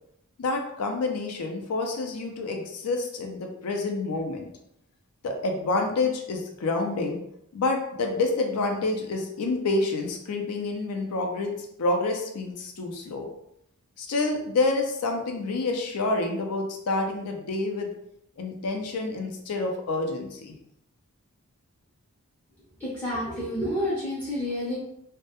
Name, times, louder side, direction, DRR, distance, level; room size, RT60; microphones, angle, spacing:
voice 1, 0.4-4.5 5.2-7.2 7.5-11.5 11.8-13.3 14.0-17.9 18.4-20.6, left 3 dB, 85° left, 3 dB, 0.4 m, -28 dB
voice 2, 22.8-24.8, equal, 5° left, -7 dB, 0.4 m, -29 dB
2.2 x 2.0 x 2.8 m, 0.76 s
head